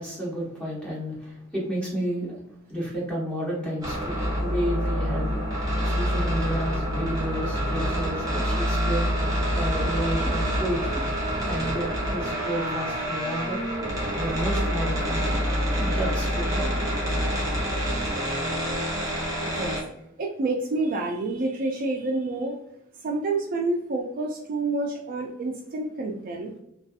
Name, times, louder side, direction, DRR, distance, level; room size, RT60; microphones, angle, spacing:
voice 1, 0.0-2.4 2.7-5.4 5.8-9.1 9.5-11.0 11.4-13.6 14.2-16.9 17.2-17.4, equal, 5° left, -6 dB, 0.9 m, -31 dB
sound 1, 3.8-19.8, equal, 15° right, 0.7 m, -26 dB
voice 2, 19.4-19.8 20.2-22.6 23.0-26.5, right 2 dB, 45° right, 1 dB, 0.3 m, -28 dB
2.6 x 2.3 x 2.3 m, 0.79 s
head